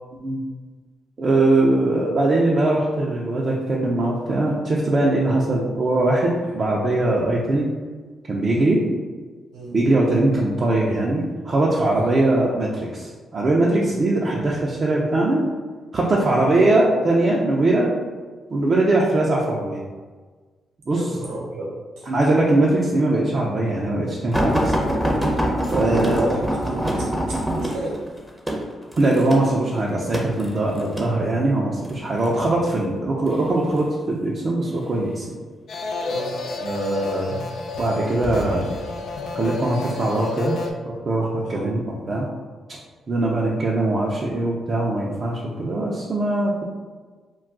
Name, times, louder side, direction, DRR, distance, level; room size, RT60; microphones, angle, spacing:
voice 1, 1.2-7.7 8.3-8.8 9.7-15.4 15.9-17.9 18.5-19.8 20.9-21.1 22.1-24.7 25.7-26.3 29.0-35.4 36.4-37.3 37.8-38.6 39.3-40.6 40.8-41.8 42.1-42.3 43.1-46.6, right 2 dB, 50° right, -4 dB, 0.5 m, -21 dB
voice 2, 20.9-21.7 22.0-22.1 25.7-28.0 36.1-36.3 41.4-41.7 43.1-43.4, right 1 dB, 80° right, -5 dB, 0.9 m, -32 dB
sound 1, 24.3-31.1 31.9-32.3 33.3-33.9 34.7-34.8 35.2-35.3, equal, ahead, 0.7 m, -24 dB
sound 2, 35.7-40.7, left 3 dB, 70° left, 0.3 m, -30 dB
2.3 x 2.2 x 3.7 m, 1.4 s
hypercardioid pair, 45°, 0 cm